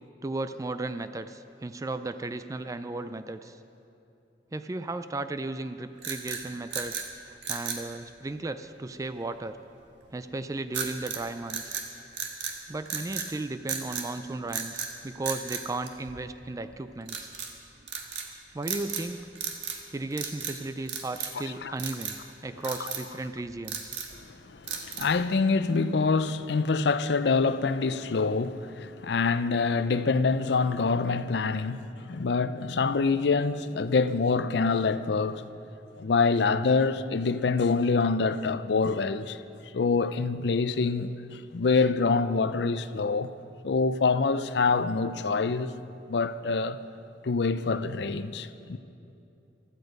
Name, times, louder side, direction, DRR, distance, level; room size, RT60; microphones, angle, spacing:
voice 1, 0.2-3.6 4.5-9.6 10.1-11.8 12.7-17.3 18.5-19.2 19.9-23.9, right 2 dB, 20° right, 0.3 m, -35 dB
sound 1, 6.0-7.1 7.4-7.9 10.7-11.2 11.5-12.6 12.9-13.3 13.7-14.1 14.5-14.9 15.2-16.4 17.1-17.5 17.9-18.3 18.6-19.1 19.3-19.8 20.1-20.6 20.9-21.4 21.8-22.2 22.6-23.1 23.5-24.2 24.7-25.2, right 6 dB, 75° right, 1.5 m, -35 dB
voice 2, 24.3-35.4 36.0-39.4 39.7-43.3 43.6-45.7 46.1-46.8 47.2-48.8, left 4 dB, 65° left, 0.5 m, -26 dB
16.0 x 12.5 x 5.3 m
head